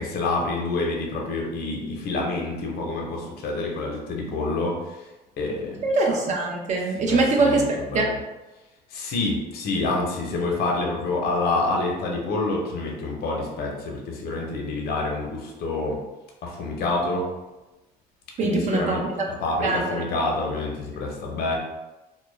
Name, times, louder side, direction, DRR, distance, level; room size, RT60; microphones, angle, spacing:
voice 1, 0.0-5.0 5.4-5.8 7.1-8.2 8.9-16.0 16.4-17.3 18.4-21.6, left 2 dB, 65° left, -1 dB, 0.6 m, -27 dB
voice 2, 5.8-8.1 18.4-19.0 19.6-20.0, right 3 dB, 45° right, 0 dB, 0.4 m, -23 dB
2.2 x 2.1 x 3.1 m, 1.1 s
cardioid pair, 110°, 17 cm